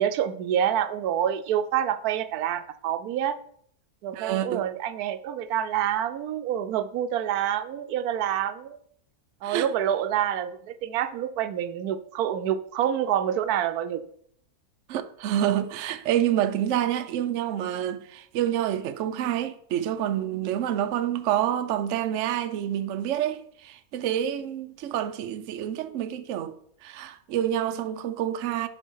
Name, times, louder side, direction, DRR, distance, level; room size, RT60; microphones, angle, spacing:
voice 1, 0.0-3.4 4.0-8.8 9.4-14.0, right 10 dB, 85° right, 1.1 m, -27 dB
voice 2, 4.1-4.6 9.4-9.7 14.9-26.5 26.8-28.7, right 11 dB, 65° right, 0.8 m, -28 dB
11.0 x 4.1 x 4.5 m
omnidirectional pair, 1.6 m